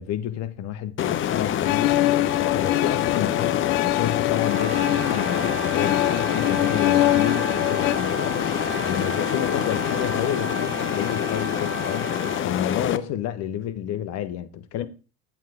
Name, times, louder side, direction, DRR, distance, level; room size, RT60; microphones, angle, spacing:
voice 1, 0.0-2.0 2.3-12.1 12.4-14.9, left 10 dB, 55° left, 1.2 m, -30 dB
sound 1, 1.0-13.0, left 10 dB, 40° left, 0.8 m, -26 dB
sound 2, 1.6-7.9, left 16 dB, 70° left, 0.6 m, -24 dB
Brass instrument, 4.3-12.5, right 4 dB, 35° right, 2.1 m, -34 dB
9.4 x 7.6 x 3.6 m
hypercardioid pair, 85°, 31 cm